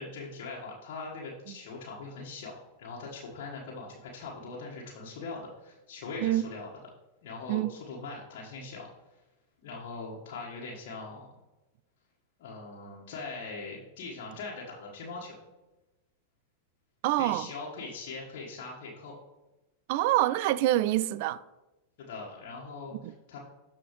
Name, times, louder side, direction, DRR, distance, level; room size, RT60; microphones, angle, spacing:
voice 1, 0.0-6.7 7.2-8.9 9.6-11.3 12.4-15.4 17.1-19.1 22.0-23.4, left 3 dB, 50° left, 1.5 m, -41 dB
voice 2, 17.0-17.5 19.9-21.4 23.0-23.1, right 15 dB, 50° right, 0.3 m, -26 dB
12.5 x 4.3 x 3.1 m
figure-of-eight pair, 90°, 0 cm